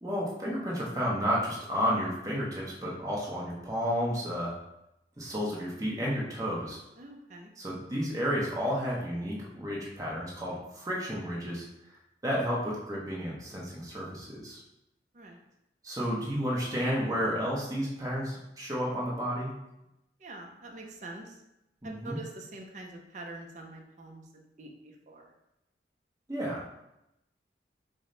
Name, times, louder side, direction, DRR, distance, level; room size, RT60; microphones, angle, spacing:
voice 1, 0.0-4.5 5.2-6.8 7.6-11.6 12.2-14.6 15.8-19.5 21.8-22.2 26.3-26.7, equal, 20° right, -4 dB, 0.9 m, -32 dB
voice 2, 7.0-7.5 15.1-15.4 20.2-21.4 21.8-25.3, right 2 dB, 40° right, 1 dB, 0.5 m, -45 dB
4.9 x 2.1 x 3.8 m, 0.88 s
head